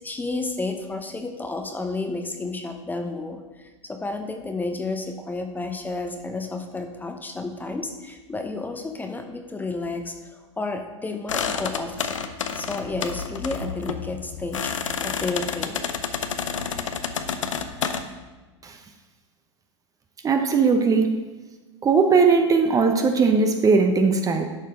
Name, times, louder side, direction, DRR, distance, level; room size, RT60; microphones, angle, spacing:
voice 1, 0.0-12.2 12.5-14.7 15.0-15.8, left 3 dB, 10° left, 5 dB, 0.9 m, -31 dB
sound 1, 11.3-18.0, left 6 dB, 80° left, 0.8 m, -29 dB
voice 2, 20.2-21.2 21.8-24.4, right 4 dB, 20° right, 5 dB, 0.9 m, -19 dB
11.0 x 6.5 x 3.9 m, 1.2 s
hypercardioid pair, 100°, 16 cm